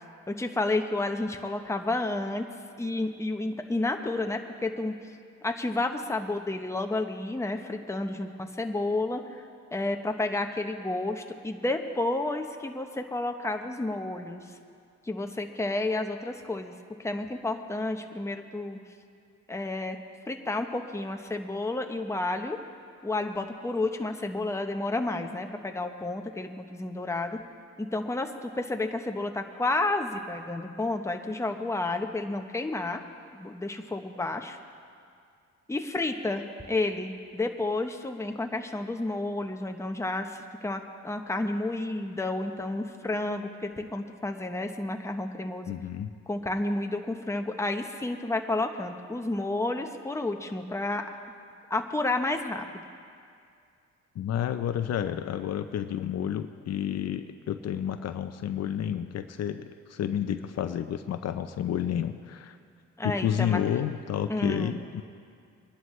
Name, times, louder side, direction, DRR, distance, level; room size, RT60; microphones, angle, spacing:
voice 1, 0.3-2.4 2.8-4.9 5.4-14.4 15.1-16.7 17.0-18.8 19.5-20.0 20.3-22.6 23.0-27.4 27.8-33.0 33.3-34.6 35.7-45.7 46.3-51.1 51.7-52.7 63.0-63.6 64.3-64.7, left 2 dB, 10° left, 5 dB, 0.9 m, -31 dB
voice 2, 45.7-46.1 54.2-62.6 63.0-65.0, left 9 dB, 60° left, 9 dB, 0.6 m, -30 dB
22.5 x 11.0 x 3.2 m, 2.3 s
cardioid pair, 90°, 30 cm